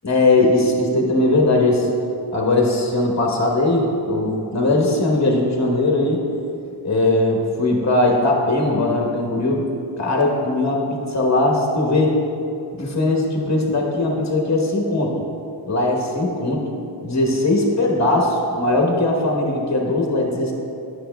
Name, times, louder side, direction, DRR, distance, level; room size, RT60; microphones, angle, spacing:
voice 1, 0.0-1.9 2.3-6.2 6.8-9.7 10.0-12.1 12.7-15.1 15.7-16.6 17.0-20.5, left 2 dB, 35° left, 0 dB, 1.1 m, -19 dB
9.1 x 6.2 x 2.2 m, 2.7 s
cardioid pair, 45°, 47 cm